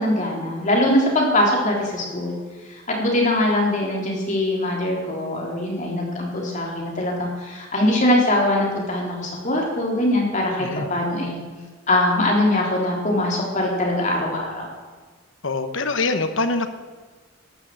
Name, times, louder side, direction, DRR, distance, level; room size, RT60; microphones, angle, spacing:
voice 1, 0.0-2.4 2.7-11.4 11.9-14.7, left 1 dB, 40° left, -1 dB, 3.6 m, -22 dB
voice 2, 15.4-16.7, left 3 dB, 70° left, 9 dB, 1.2 m, -24 dB
13.5 x 11.0 x 7.7 m, 1.4 s
head